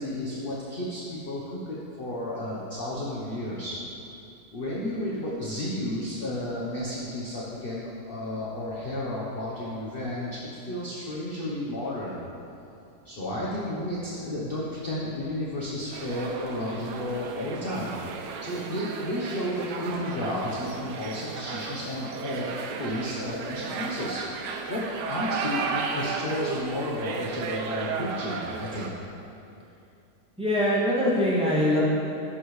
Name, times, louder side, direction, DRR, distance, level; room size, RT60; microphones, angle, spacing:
voice 1, 0.0-3.8 4.5-12.2 13.0-17.9 18.4-28.9, left 1 dB, 40° left, -6 dB, 1.0 m, -32 dB
sound 1, 15.9-28.9, right 5 dB, 80° right, 1.3 m, -34 dB
voice 2, 30.4-31.8, equal, 5° right, -9 dB, 1.8 m, -23 dB
11.5 x 6.2 x 3.2 m, 2.7 s
omnidirectional pair, 1.8 m